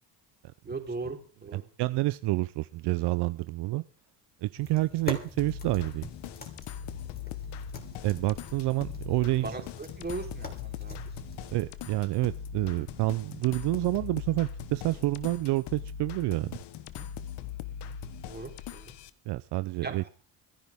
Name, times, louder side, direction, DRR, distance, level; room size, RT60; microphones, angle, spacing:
voice 1, 0.6-1.7 9.3-11.2 15.0-15.1 16.9-17.1 17.7-18.0 18.2-18.9 19.8-20.1, right 3 dB, 25° right, 3 dB, 3.6 m, -39 dB
voice 2, 1.5-3.8 4.4-6.1 8.0-9.5 11.5-16.6 19.3-20.0, right 18 dB, 70° right, 14 dB, 0.7 m, -28 dB
sound 1, 4.6-11.5, left 3 dB, 20° left, 3.4 m, -44 dB
sound 2, 5.4-19.1, left 8 dB, 70° left, 1.2 m, -40 dB
25.5 x 10.5 x 3.6 m, 0.38 s
cardioid pair, 95°, 41 cm